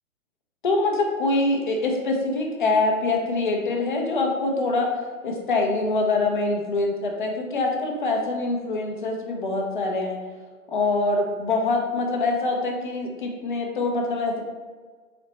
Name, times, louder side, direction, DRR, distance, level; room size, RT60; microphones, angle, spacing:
voice 1, 0.6-10.2 10.7-14.4, left 3 dB, 35° left, 1 dB, 0.6 m, -24 dB
4.2 x 3.1 x 4.0 m, 1.4 s
hypercardioid pair, 165°, 43 cm